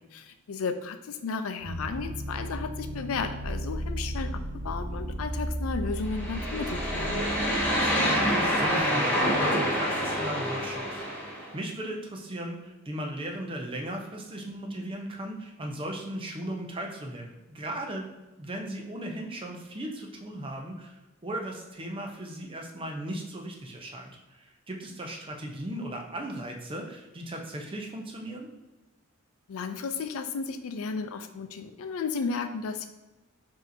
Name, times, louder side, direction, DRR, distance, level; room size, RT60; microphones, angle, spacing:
voice 1, 0.1-7.2 29.5-32.9, left 5 dB, 80° left, 9 dB, 0.4 m, -34 dB
sound 1, 1.6-8.8, right 1 dB, 85° right, 0.9 m, -35 dB
sound 2, 6.0-11.5, equal, 10° left, 0.9 m, -27 dB
voice 2, 7.7-11.0 11.4-18.1 18.4-28.5, right 1 dB, 25° right, 1 dB, 0.6 m, -37 dB
5.2 x 2.8 x 2.6 m, 1.1 s
head